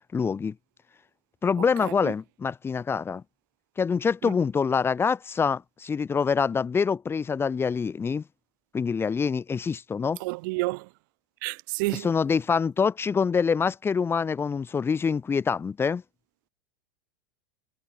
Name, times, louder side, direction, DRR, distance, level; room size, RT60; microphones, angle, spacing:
voice 1, 0.1-0.5 1.4-3.2 3.8-8.2 8.7-10.2 12.0-16.0, left 6 dB, 20° left, 2.9 m, -25 dB
voice 2, 1.8-2.1 4.2-4.4 10.2-10.9 11.4-12.1, right 26 dB, 65° right, 1.6 m, -30 dB
hypercardioid pair, 105°, 11 cm